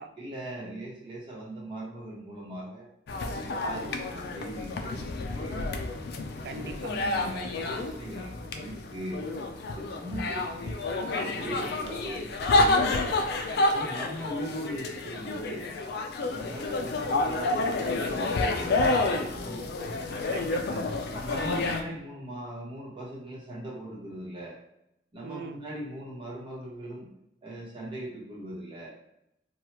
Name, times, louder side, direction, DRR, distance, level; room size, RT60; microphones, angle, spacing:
voice 1, 0.2-2.9 3.3-5.6 6.5-9.2 9.7-12.3 13.7-15.7 16.3-19.6 21.0-24.6 25.1-27.1 27.4-28.9, right 1 dB, 30° right, -6 dB, 1.0 m, -40 dB
sound 1, 3.1-21.8, left 2 dB, 60° left, 0.4 m, -29 dB
voice 2, 3.6-4.2 6.4-7.0 12.9-13.9 20.3-20.9 25.2-25.6, right 4 dB, 60° right, 7 dB, 0.3 m, -43 dB
3.1 x 2.3 x 2.9 m, 0.81 s
head